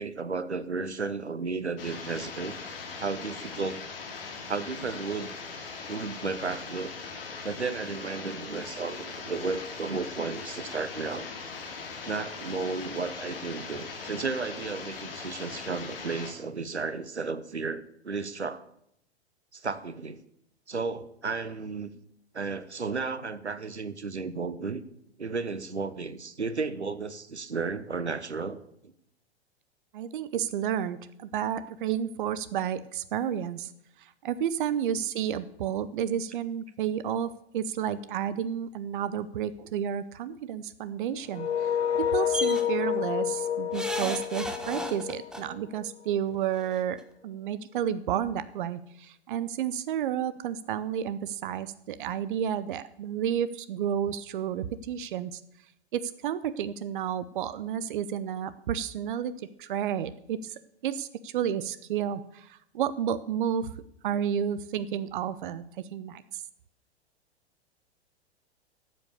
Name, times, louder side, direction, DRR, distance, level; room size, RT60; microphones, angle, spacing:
voice 1, 0.0-2.5 3.0-3.8 4.5-5.3 5.9-6.9 7.4-11.3 12.1-18.6 19.5-20.2 20.7-21.9 22.3-24.8 25.2-28.9, right 4 dB, 85° right, 15 dB, 0.9 m, -33 dB
sound 1, 1.8-16.3, left 4 dB, 60° left, 2.9 m, -40 dB
voice 2, 29.9-33.7 34.0-55.4 55.9-59.3 59.6-60.5 60.8-63.7 64.0-66.4, right 9 dB, 50° right, 15 dB, 0.6 m, -31 dB
sound 2, 41.3-46.1, left 9 dB, 80° left, 0.5 m, -29 dB
sound 3, 42.3-42.6 43.7-45.4 46.6-46.7 47.0-47.1, right 1 dB, ahead, 0.9 m, -34 dB
13.0 x 7.7 x 6.8 m, 0.75 s
figure-of-eight pair, 100°, 33 cm